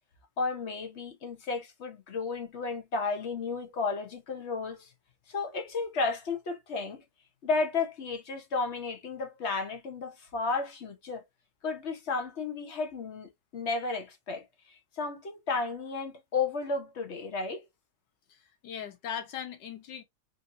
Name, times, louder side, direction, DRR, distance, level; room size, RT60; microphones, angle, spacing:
voice 1, 0.4-4.9 5.3-7.0 7.4-11.2 11.6-14.4 15.0-17.6, left 4 dB, 50° left, 0.9 m, -33 dB
voice 2, 18.3-20.0, left 8 dB, 80° left, 1.5 m, -39 dB
3.9 x 2.7 x 2.6 m
omnidirectional pair, 1.8 m